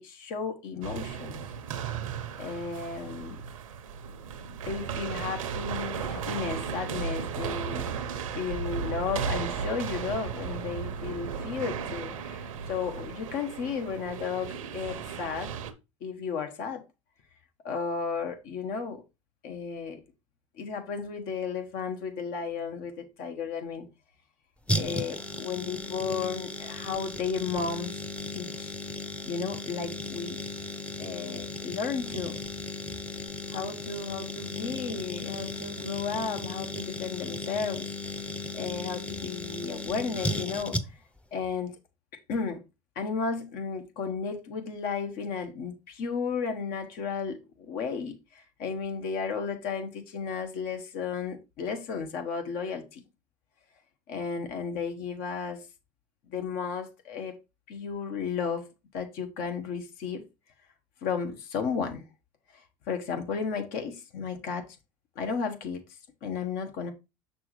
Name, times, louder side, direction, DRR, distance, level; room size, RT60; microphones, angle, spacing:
voice 1, 0.0-1.4 2.4-3.4 4.6-7.9 8.3-15.5 16.0-16.8 17.6-19.0 19.4-20.0 20.6-23.9 24.7-27.9 28.3-28.7 29.2-30.4 31.0-32.4 33.5-37.9 38.1-38.2 38.5-40.8 41.3-41.7 42.3-42.6 42.9-47.4 47.7-53.0 54.1-55.7 56.3-57.4 57.7-58.7 58.9-60.2 61.0-62.1 62.5-64.7 65.1-65.8 66.2-66.9, left 5 dB, 60° left, 1.2 m, -33 dB
sound 1, 0.8-15.7, right 6 dB, 85° right, 0.8 m, -35 dB
sound 2, 24.7-41.2 41.4-41.5, left 1 dB, 5° left, 0.7 m, -36 dB
6.3 x 6.0 x 3.1 m
hypercardioid pair, 80°, 17 cm